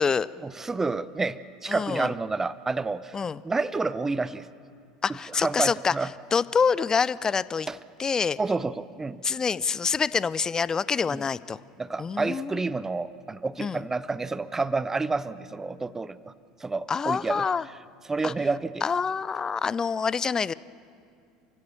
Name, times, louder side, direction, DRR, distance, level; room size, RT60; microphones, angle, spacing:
voice 1, 0.4-3.2 3.4-4.5 5.3-6.1 7.7-7.8 8.4-9.2 11.1-11.2 11.8-16.3 16.6-17.4 18.1-18.8, right 3 dB, 15° right, 17 dB, 0.7 m, -29 dB
voice 2, 1.7-2.1 3.1-3.4 5.0-5.9 6.3-7.7 8.0-8.4 9.2-11.6 12.0-12.6 13.6-13.8 16.9-17.7 18.2-18.3 18.8-20.5, left 5 dB, 20° left, 19 dB, 0.5 m, -26 dB
sound 1, 3.4-4.1, right 5 dB, 75° right, 2.9 m, -56 dB
28.0 x 16.0 x 7.0 m, 2.4 s
figure-of-eight pair, 70°, 3 cm